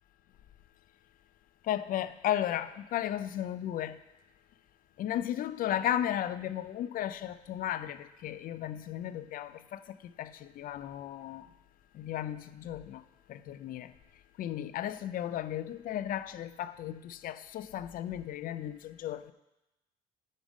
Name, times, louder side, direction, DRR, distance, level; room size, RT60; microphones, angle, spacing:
voice 1, 1.7-4.0 5.0-9.8 10.2-11.5 11.9-13.0 13.3-13.9 14.4-19.3, left 11 dB, 55° left, 0.4 m, -35 dB
10.0 x 3.5 x 6.2 m
cardioid pair, 110°, 17 cm